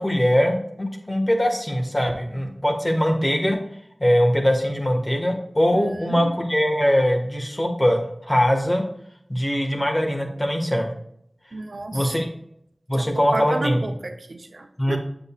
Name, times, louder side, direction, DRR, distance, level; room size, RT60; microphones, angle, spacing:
voice 1, 0.0-3.6 4.0-8.8 9.3-10.9 11.9-12.3 12.9-13.8 14.8-15.0, equal, 20° left, 2 dB, 1.7 m, -21 dB
voice 2, 11.5-12.2 13.0-13.1 13.3-15.0, right 2 dB, 75° right, 6 dB, 0.8 m, -31 dB
8.1 x 7.7 x 2.4 m, 0.72 s
wide cardioid pair, 65°, 0 cm